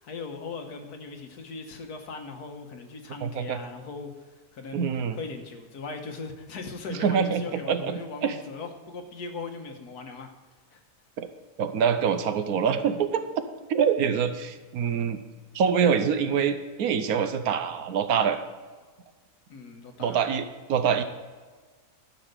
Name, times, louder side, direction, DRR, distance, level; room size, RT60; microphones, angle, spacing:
voice 1, 0.0-4.8 5.1-10.3 10.7-10.8 19.5-20.2, left 4 dB, 80° left, 5 dB, 1.6 m, -39 dB
voice 2, 3.2-3.6 4.7-5.2 6.9-8.4 11.2-11.3 11.6-13.2 13.7-15.2 15.5-18.4 20.0-21.0, right 7 dB, 75° right, 10 dB, 1.2 m, -25 dB
12.5 x 5.4 x 6.6 m, 1.4 s
omnidirectional pair, 1.6 m